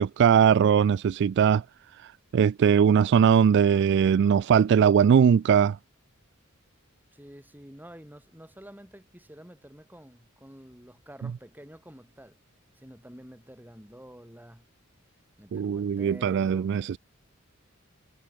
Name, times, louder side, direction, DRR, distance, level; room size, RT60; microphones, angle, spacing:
voice 1, 0.0-1.6 1.9-5.8 11.2-11.3 15.5-17.0, right 7 dB, 55° right, 0.3 m, -21 dB
voice 2, 7.1-12.4 12.8-14.7 15.4-16.7, equal, 10° right, 7.6 m, -48 dB
head